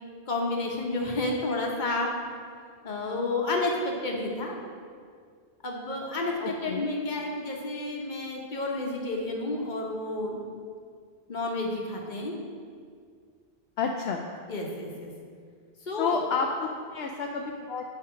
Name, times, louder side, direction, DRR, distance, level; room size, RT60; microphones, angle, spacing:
voice 1, 0.3-2.1 2.8-4.6 5.6-10.4 11.3-12.4 14.5-15.1 15.9-16.2, left 2 dB, 50° left, 0 dB, 1.2 m, -30 dB
voice 2, 6.4-6.9 13.8-14.3 16.0-17.8, left 5 dB, 75° left, 2 dB, 0.8 m, -30 dB
9.7 x 3.6 x 5.7 m, 2.1 s
omnidirectional pair, 1.1 m